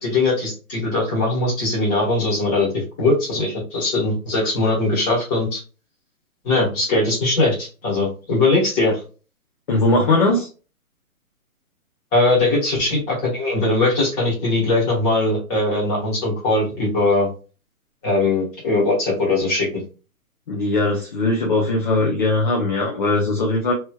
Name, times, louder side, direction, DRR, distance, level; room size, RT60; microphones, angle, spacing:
voice 1, 0.0-2.7 3.0-5.6 6.4-9.0 12.1-17.3 18.0-19.8, left 2 dB, 15° left, -6 dB, 1.5 m, -20 dB
voice 2, 9.7-10.5 20.5-23.7, left 2 dB, 35° left, -2 dB, 0.8 m, -19 dB
3.2 x 2.9 x 2.3 m, 0.34 s
hypercardioid pair, 155°, 43 cm